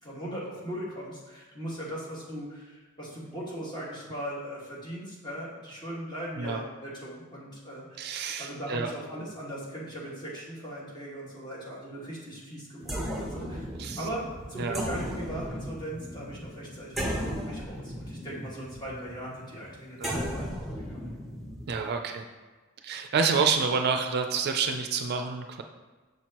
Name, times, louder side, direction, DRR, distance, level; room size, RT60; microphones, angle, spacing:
voice 1, 0.0-8.1 8.4-13.7 14.0-20.5 20.9-21.1, equal, 20° left, -6 dB, 1.7 m, -39 dB
voice 2, 8.0-8.9 13.8-14.0 14.6-14.8 20.0-20.1 21.7-22.2 22.8-25.6, right 5 dB, 50° right, 5 dB, 0.4 m, -28 dB
sound 1, 12.8-21.8, equal, ahead, 0.9 m, -36 dB
6.7 x 6.1 x 2.9 m, 1.3 s
head